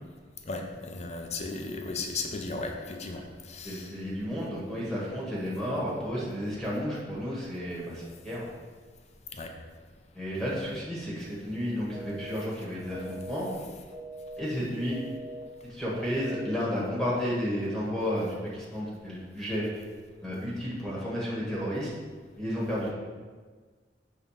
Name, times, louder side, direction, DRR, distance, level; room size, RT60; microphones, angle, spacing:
voice 1, 0.5-3.9 9.3-9.5, left 3 dB, 40° left, 4 dB, 0.7 m, -36 dB
voice 2, 3.6-8.4 10.1-13.5 14.4-15.0 15.6-19.8 20.2-21.9 22.4-22.9, equal, ahead, -7 dB, 1.4 m, -32 dB
sound 1, 11.9-12.4 12.9-13.4 13.9-14.4 14.9-15.4 15.9-16.4, right 2 dB, 30° right, 1.4 m, -42 dB
6.9 x 3.8 x 5.7 m, 1.5 s
head